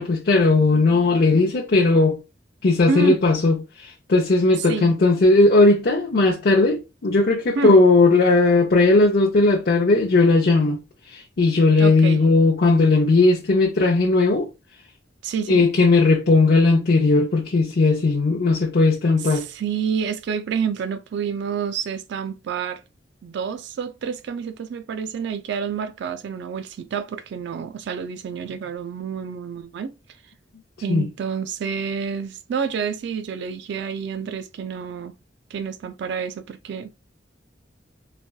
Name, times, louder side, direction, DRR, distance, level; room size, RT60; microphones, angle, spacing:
voice 1, 0.0-2.2 2.6-10.8 11.1-14.5 15.5-19.4 30.9-31.1, left 3 dB, 55° left, 0.6 m, -17 dB
voice 2, 2.9-3.2 4.6-5.0 7.5-7.8 11.8-12.2 15.2-15.7 19.2-22.8 23.2-29.9 30.8-35.1 35.5-36.9, right 6 dB, 65° right, 0.3 m, -28 dB
4.1 x 2.3 x 2.2 m
head